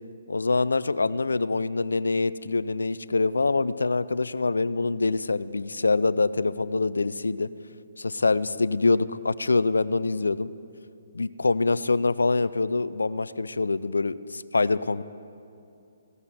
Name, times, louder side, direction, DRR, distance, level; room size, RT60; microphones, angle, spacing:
voice 1, 0.3-7.5 8.0-10.5 11.1-15.0, left 3 dB, 85° left, 16 dB, 0.4 m, -25 dB
16.5 x 5.7 x 7.6 m, 2.6 s
hypercardioid pair, 145°, 0 cm